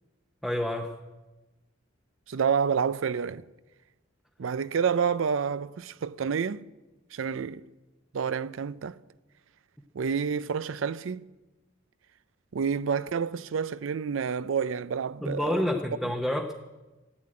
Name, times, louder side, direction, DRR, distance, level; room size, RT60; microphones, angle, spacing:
voice 1, 0.4-0.9 15.2-16.5, left 1 dB, ahead, 0.8 m, -28 dB
voice 2, 2.3-3.4 4.4-6.6 7.1-7.6 8.1-9.0 9.9-11.3 12.5-15.7, right 6 dB, 65° right, 0.5 m, -29 dB
15.0 x 10.0 x 8.7 m
head